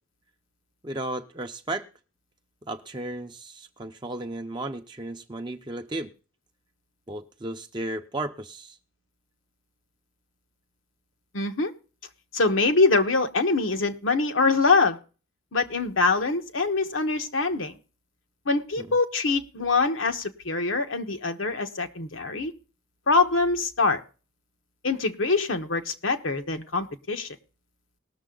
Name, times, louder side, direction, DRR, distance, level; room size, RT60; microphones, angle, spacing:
voice 1, 0.8-1.9 2.7-6.1 7.1-8.8 18.8-18.9, right 2 dB, 20° right, 5 dB, 0.6 m, -34 dB
voice 2, 11.3-11.7 12.3-15.0 15.5-17.7 18.5-22.5 23.1-24.0 24.8-27.3, left 3 dB, 80° left, 6 dB, 1.2 m, -24 dB
19.5 x 6.8 x 3.8 m, 0.36 s
head